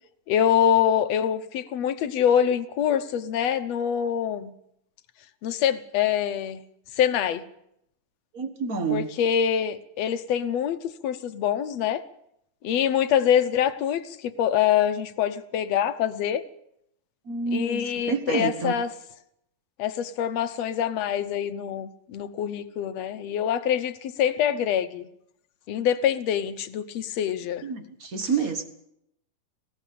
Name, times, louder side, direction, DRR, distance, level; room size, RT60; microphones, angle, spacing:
voice 1, 0.3-4.5 5.4-6.6 6.9-7.4 8.9-12.0 12.6-16.4 17.5-18.9 19.8-25.1 25.7-27.6, left 9 dB, 70° left, 11 dB, 1.9 m, -25 dB
voice 2, 8.3-9.1 17.3-18.7 27.6-28.6, right 5 dB, 45° right, 8 dB, 1.2 m, -28 dB
19.0 x 16.0 x 8.4 m, 0.79 s
omnidirectional pair, 3.4 m